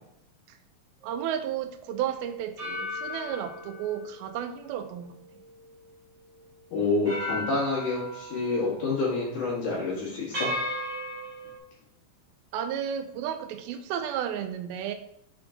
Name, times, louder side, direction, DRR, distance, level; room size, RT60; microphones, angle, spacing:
sound 1, 1.0-1.3 2.6-6.0 6.4-6.5 7.0-8.9 9.2-9.5 10.3-11.6, left 1 dB, 30° right, 1.8 m, -36 dB
voice 1, 1.0-5.2 12.5-15.0, right 9 dB, 90° right, 8 dB, 2.4 m, -32 dB
voice 2, 6.7-10.5, left 3 dB, 60° left, -6 dB, 3.0 m, -28 dB
6.9 x 3.7 x 3.7 m, 0.72 s
omnidirectional pair, 4.2 m